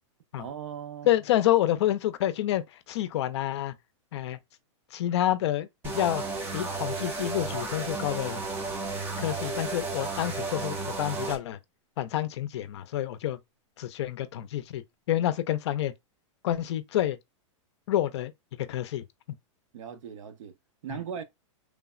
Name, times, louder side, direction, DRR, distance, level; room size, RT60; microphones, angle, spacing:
voice 1, 0.4-1.1 19.7-20.5 20.8-21.2, right 8 dB, 80° right, 0.6 m, -38 dB
voice 2, 1.0-3.7 4.1-4.4 4.9-6.2 6.5-8.4 9.2-11.6 12.0-13.4 13.8-15.9 16.4-17.2 17.9-18.3 18.6-19.0 20.9-21.0, left 13 dB, 60° left, 0.4 m, -28 dB
sound 1, 5.8-11.4, right 3 dB, 15° right, 0.4 m, -33 dB
3.3 x 2.0 x 2.3 m
supercardioid pair, 165°, 16 cm